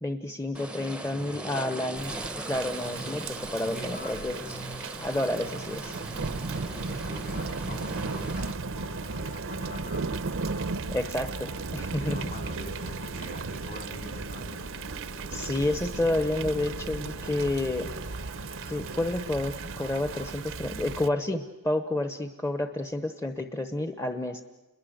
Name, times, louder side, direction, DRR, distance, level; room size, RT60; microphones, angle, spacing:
voice 1, 0.0-2.1 2.5-4.4 5.0-6.0 10.9-12.3 15.3-17.9 18.7-24.4, left 1 dB, 15° left, 8 dB, 0.9 m, -30 dB
sound 1, 0.5-8.5, right 1 dB, 5° right, 0.8 m, -39 dB
sound 2, 1.0-20.3, left 1 dB, 65° left, 5.4 m, -48 dB
Thunder / Rain, 2.0-21.1, right 4 dB, 65° right, 0.8 m, -36 dB
voice 2, 3.6-4.3 6.6-10.2 11.9-14.6, left 1 dB, 45° left, 6 dB, 3.0 m, -43 dB
29.5 x 22.0 x 8.0 m, 1.1 s
head